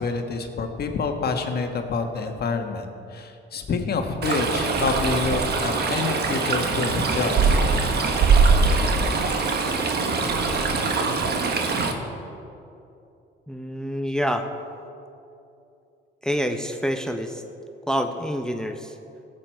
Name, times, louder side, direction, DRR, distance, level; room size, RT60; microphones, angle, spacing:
voice 1, 0.0-7.6, left 4 dB, 55° left, 5 dB, 1.4 m, -27 dB
Stream, 4.2-11.9, right 4 dB, 55° right, 1.3 m, -22 dB
voice 2, 13.5-14.5 16.2-17.4 17.9-18.9, equal, 5° left, 6 dB, 0.7 m, -27 dB
17.5 x 7.9 x 4.5 m, 2.7 s
cardioid pair, 90°, 20 cm